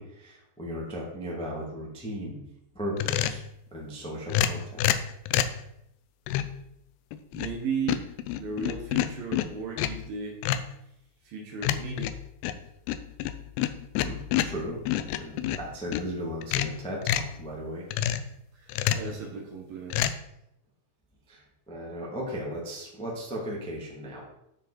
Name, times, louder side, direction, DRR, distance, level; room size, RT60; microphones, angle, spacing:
voice 1, 0.0-2.4 2.7-3.4 3.7-4.8 14.0-14.8 15.2-17.9 21.3-24.2, equal, 5° left, -4 dB, 1.0 m, -36 dB
sound 1, 3.0-3.5 4.3-5.6 6.3-6.6 7.1-7.6 7.9-10.1 10.4-10.7 11.6-16.1 16.4-17.4 17.9-18.3 18.7-19.1 19.9-20.1, left 11 dB, 85° left, 2.4 m, -28 dB
voice 2, 7.3-8.1 8.4-10.4 11.2-12.2 18.5-20.1, right 5 dB, 65° right, 0 dB, 2.7 m, -35 dB
12.5 x 5.0 x 4.3 m, 0.79 s
omnidirectional pair, 5.2 m